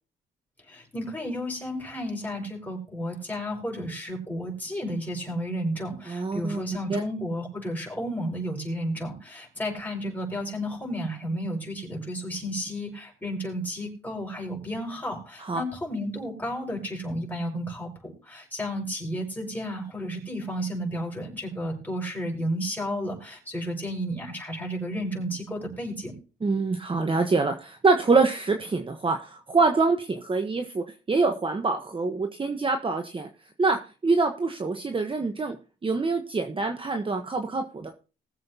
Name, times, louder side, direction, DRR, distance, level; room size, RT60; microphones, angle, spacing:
voice 1, 0.7-26.1, equal, 10° left, -1 dB, 5.8 m, -32 dB
voice 2, 6.1-6.6 6.9-7.0 15.4-15.6 26.4-33.3 33.6-35.6 35.8-37.9, right 3 dB, 25° right, 6 dB, 1.2 m, -25 dB
20.5 x 7.7 x 2.9 m, 0.35 s
cardioid pair, 90°, 20 cm